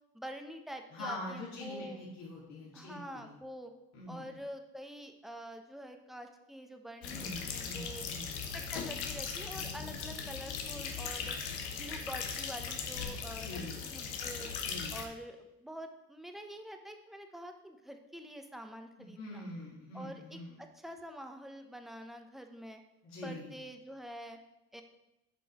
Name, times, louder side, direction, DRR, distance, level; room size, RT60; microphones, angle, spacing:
voice 1, 0.1-2.0 2.7-3.7 4.1-8.1 8.5-11.4 11.7-14.5 14.9-19.5 19.9-22.8 23.2-24.4 24.7-24.8, equal, ahead, 5 dB, 1.0 m, -46 dB
voice 2, 0.9-3.3 3.9-4.3 7.1-8.4 13.4-13.8 14.6-15.0 19.0-20.6 23.0-23.5, left 1 dB, 55° left, -5 dB, 2.4 m, -44 dB
sound 1, 7.0-15.0, left 6 dB, 85° left, 1.1 m, -39 dB
7.5 x 5.3 x 4.4 m, 0.92 s
hypercardioid pair, 65°, 33 cm